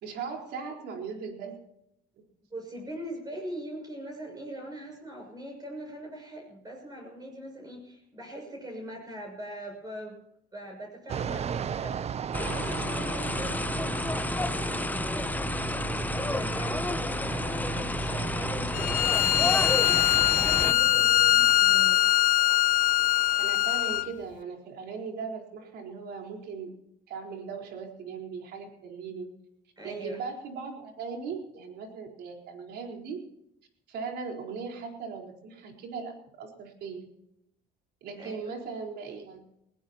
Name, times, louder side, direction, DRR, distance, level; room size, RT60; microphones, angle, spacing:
voice 1, 0.0-1.6 23.4-26.7 27.1-29.3 29.8-33.2 33.9-37.1 38.0-39.4, right 5 dB, 75° right, 2 dB, 4.3 m, -38 dB
voice 2, 2.5-10.2 10.5-15.3 15.8-16.0 16.3-22.1 29.8-30.2 38.2-38.5, right 1 dB, 25° right, 0 dB, 6.6 m, -41 dB
Fixed-wing aircraft airplane, 11.1-21.9, right 7 dB, 40° right, 0.6 m, -36 dB
sound 1, 12.3-20.7, left 2 dB, 10° left, 0.7 m, -31 dB
Bowed string instrument, 18.7-24.1, left 13 dB, 55° left, 0.6 m, -22 dB
20.0 x 19.5 x 2.9 m, 0.77 s
cardioid pair, 110°, 17 cm